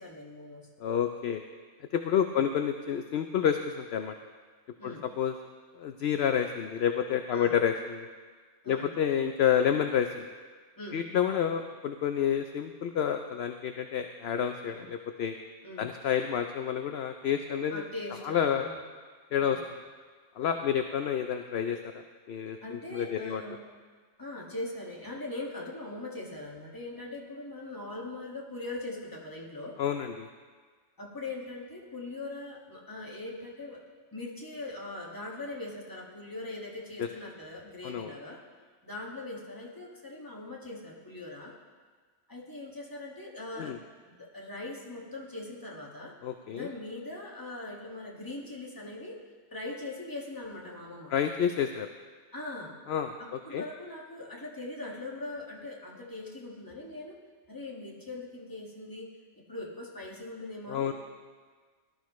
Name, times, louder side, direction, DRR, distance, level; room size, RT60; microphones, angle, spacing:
voice 1, 0.0-0.7 2.2-2.4 4.8-5.1 7.3-7.6 8.6-8.9 10.8-11.1 14.7-14.9 15.6-15.9 17.7-18.8 19.4-19.6 20.4-20.6 22.6-23.6 24.2-29.8 31.0-33.8 34.1-38.4 38.8-41.5 42.3-43.7 44.1-46.1 46.5-49.2 49.5-51.1 52.3-52.8 53.2-57.2 57.5-59.1 59.3-60.9, left 2 dB, 15° left, -3 dB, 1.8 m, -41 dB
voice 2, 0.8-1.4 1.9-4.1 4.8-5.3 5.8-8.1 8.7-10.3 10.9-15.3 15.8-17.8 18.2-18.7 19.3-19.6 20.4-21.8 22.3-23.4 29.8-30.3 37.0-37.1 37.8-38.1 43.6-43.8 46.2-46.7 51.1-51.9 52.9-53.6 60.7-60.9, left 8 dB, 60° left, 6 dB, 0.8 m, -29 dB
17.5 x 12.0 x 3.1 m, 1.5 s
omnidirectional pair, 1.3 m